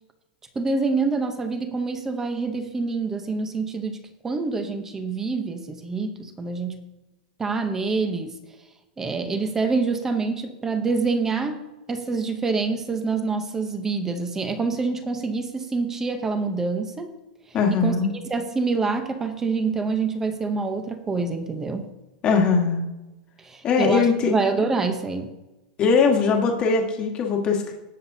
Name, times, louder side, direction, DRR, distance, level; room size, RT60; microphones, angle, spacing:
voice 1, 0.5-6.8 7.4-8.4 9.0-11.6 11.9-17.1 17.7-18.0 18.3-21.9 23.4-25.3, right 4 dB, 10° right, 8 dB, 0.8 m, -26 dB
voice 2, 17.5-18.1 22.2-22.8 23.6-24.3 25.8-27.7, left 5 dB, 20° left, 1 dB, 1.5 m, -20 dB
18.5 x 7.3 x 2.7 m, 1.0 s
supercardioid pair, 170°, 5 cm